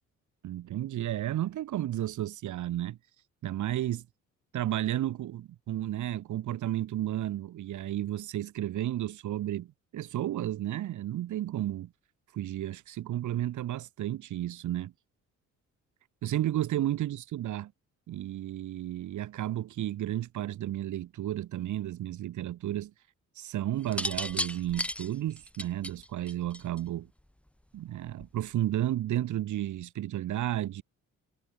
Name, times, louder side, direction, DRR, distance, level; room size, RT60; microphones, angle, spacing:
voice 1, 0.4-3.0 3.4-4.1 4.5-11.9 12.3-14.9 16.2-17.7 18.1-22.9 23.4-27.1 27.7-30.8, right 13 dB, 75° right, 2.2 m, -32 dB
sound 1, 23.8-27.0 28.1-28.4, left 1 dB, 5° left, 3.6 m, -34 dB
cardioid pair, 90°, 30 cm